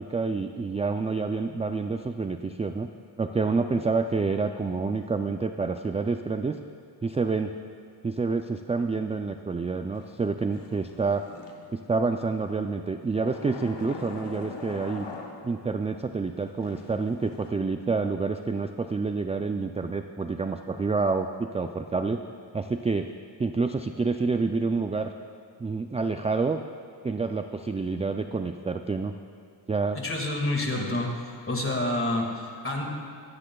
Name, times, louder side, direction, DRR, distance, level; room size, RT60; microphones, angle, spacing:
voice 1, 0.0-2.9 3.2-6.6 7.0-7.6 8.0-11.3 11.7-15.1 15.4-22.2 22.5-23.1 23.4-25.1 25.6-26.6 27.0-29.1 29.7-30.0, right 4 dB, 15° right, 7 dB, 0.3 m, -28 dB
sound 1, 9.9-12.0 13.2-15.9 16.4-17.5, left 4 dB, 75° left, 1.1 m, -43 dB
voice 2, 30.0-31.1 31.5-32.9, left 1 dB, 30° left, 1 dB, 2.0 m, -28 dB
15.5 x 13.5 x 2.3 m, 2.3 s
cardioid pair, 75°, 43 cm